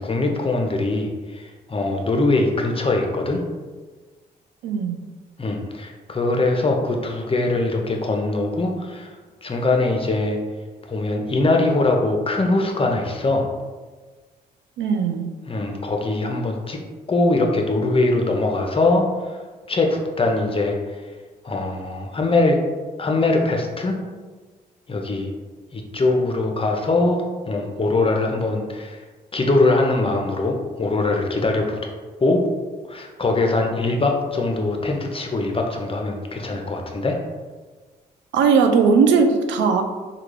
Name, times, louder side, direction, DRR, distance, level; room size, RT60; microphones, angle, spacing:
voice 1, 0.0-3.4 5.4-9.1 9.4-10.4 10.8-13.5 15.5-16.8 17.1-19.4 19.7-20.7 21.4-22.6 23.0-24.0 24.9-25.3 25.7-29.0 29.3-31.8 32.2-32.4 32.9-37.2, left 2 dB, 25° left, 2 dB, 0.6 m, -22 dB
voice 2, 4.6-5.0 14.8-15.3 38.3-39.8, right 5 dB, 65° right, 5 dB, 0.4 m, -18 dB
3.4 x 2.3 x 3.2 m, 1.3 s
hypercardioid pair, 40°, 21 cm